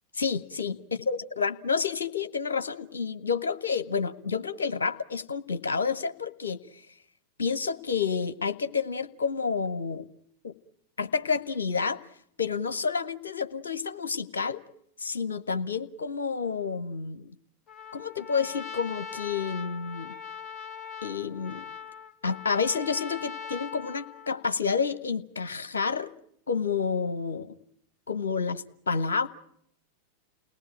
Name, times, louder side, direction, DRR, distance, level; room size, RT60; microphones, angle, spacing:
voice 1, 0.1-0.8 1.1-6.6 7.4-10.1 10.4-10.6 11.0-12.0 12.4-14.6 15.0-17.3 17.9-20.1 21.0-21.7 22.2-26.1 26.5-27.5 28.1-29.3, left 5 dB, 70° left, 12 dB, 0.9 m, -29 dB
Trumpet, 17.7-24.5, left 7 dB, 30° left, 1.6 m, -41 dB
29.0 x 18.5 x 9.0 m, 0.73 s
figure-of-eight pair, 90°, 0 cm